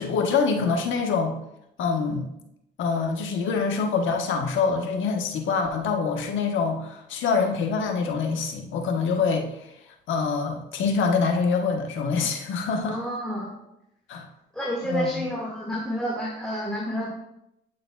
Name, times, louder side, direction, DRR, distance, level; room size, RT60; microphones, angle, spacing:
voice 1, 0.0-1.3 1.8-2.3 2.8-9.6 10.1-13.0 14.1-14.3 14.8-15.3, left 5 dB, 75° left, 3 dB, 1.1 m, -25 dB
voice 2, 12.9-13.5 14.5-17.1, equal, 5° left, -5 dB, 1.7 m, -29 dB
9.5 x 6.6 x 2.3 m, 0.83 s
cardioid pair, 90°, 20 cm